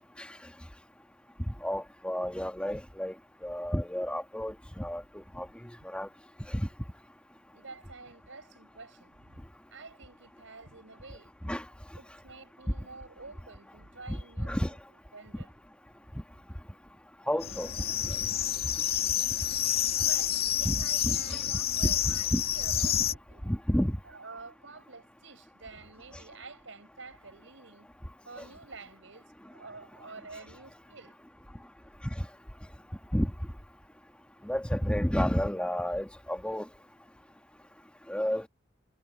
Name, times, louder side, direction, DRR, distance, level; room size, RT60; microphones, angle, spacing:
voice 1, 1.5-3.1 3.4-5.0 5.4-5.5 5.9-6.1 6.5-6.7 11.4-11.6 14.1-14.7 17.3-17.7 20.6-21.2 21.8-22.4 23.4-24.0 33.1-33.3 34.4-36.7 38.1-38.5, equal, 5° left, 1.7 m, -30 dB
voice 2, 7.5-9.4 9.7-11.3 12.0-15.5 20.0-23.6 24.0-27.9 28.2-31.2, right 3 dB, 80° right, 5.4 m, -49 dB
sound 1, 17.4-23.1, left 11 dB, 55° left, 2.3 m, -29 dB
head